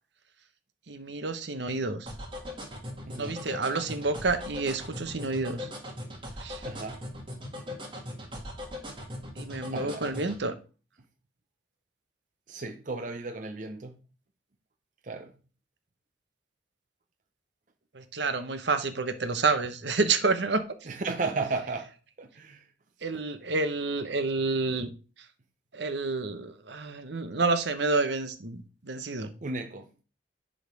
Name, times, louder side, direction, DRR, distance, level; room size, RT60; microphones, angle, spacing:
voice 1, 0.9-2.1 3.2-5.7 6.4-6.6 9.4-10.5 17.9-20.6 23.0-24.9 25.7-29.3, right 3 dB, 70° right, 1.0 m, -29 dB
sound 1, 2.1-10.4, left 1 dB, 25° right, 1.9 m, -39 dB
voice 2, 3.1-3.4 6.6-7.0 9.7-10.0 12.5-14.0 15.0-15.3 20.9-22.7 29.4-30.0, right 3 dB, 45° right, 0.6 m, -35 dB
10.5 x 3.8 x 4.8 m
head